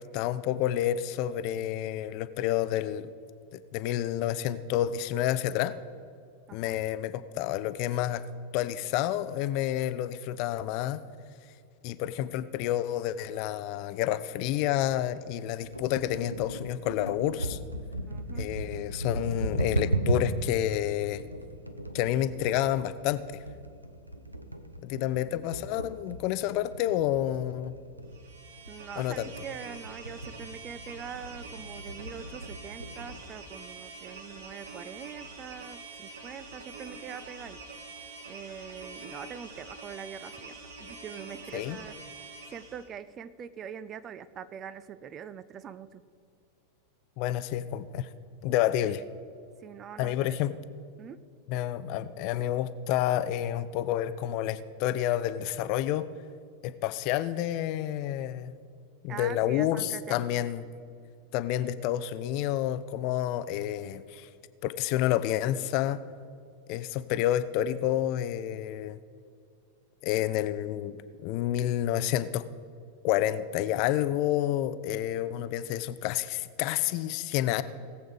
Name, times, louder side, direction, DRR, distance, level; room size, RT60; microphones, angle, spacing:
voice 1, 0.0-3.1 3.5-5.7 6.5-8.2 8.5-11.0 11.8-17.6 18.4-21.2 21.9-23.4 24.8-27.8 29.0-29.3 41.5-41.8 47.2-48.1 48.4-49.0 50.0-50.6 51.5-56.1 56.6-58.5 59.0-60.6 61.3-64.3 64.6-66.0 66.7-69.0 70.0-72.4 73.0-77.6, left 12 dB, 45° left, 15 dB, 0.5 m, -29 dB
sound 1, 15.6-33.2, right 2 dB, 85° right, 0.7 m, -36 dB
voice 2, 18.1-18.5 25.3-25.5 28.7-37.6 38.3-42.1 42.5-46.0 49.6-50.4 51.0-51.2 59.1-60.4, right 8 dB, 30° right, 15 dB, 0.4 m, -43 dB
sound 2, 28.1-42.9, right 3 dB, 60° right, 1.6 m, -45 dB
18.5 x 7.9 x 5.0 m, 2.3 s
figure-of-eight pair, 90°, 0 cm